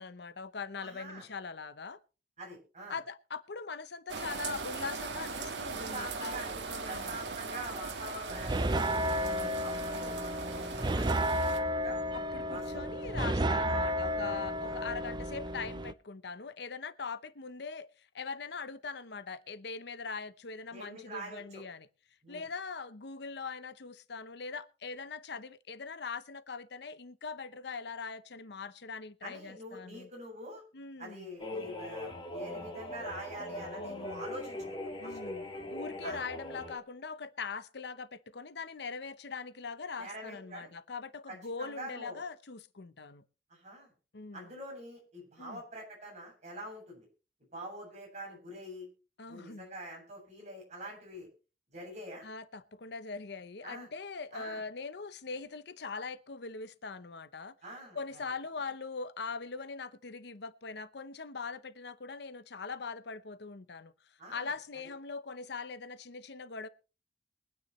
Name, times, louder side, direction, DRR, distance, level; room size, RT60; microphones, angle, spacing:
voice 1, 0.0-2.0 2.9-7.2 9.2-9.7 12.1-21.9 22.3-30.1 30.7-31.3 33.7-34.3 35.0-43.2 44.1-44.5 45.4-45.6 49.2-49.7 52.2-57.5 57.9-66.7, left 4 dB, 70° left, 0.8 m, -42 dB
voice 2, 0.8-1.2 2.4-3.0 5.7-9.0 9.6-12.0 12.5-12.8 13.6-13.9 14.6-14.8 20.7-21.6 22.2-22.4 29.2-30.6 31.0-35.2 36.0-36.2 40.0-40.7 41.3-42.2 43.5-43.9 44.3-47.1 47.5-48.9 49.3-51.3 51.7-52.3 53.6-53.9 54.3-54.6 57.6-58.0 64.2-64.5, right 1 dB, 40° right, 7.9 m, -45 dB
sound 1, 4.1-11.6, right 4 dB, 80° right, 1.6 m, -40 dB
sound 2, 8.3-15.9, equal, 25° right, 0.6 m, -32 dB
sound 3, 31.4-36.8, left 1 dB, 30° left, 3.0 m, -41 dB
23.0 x 9.5 x 3.2 m
head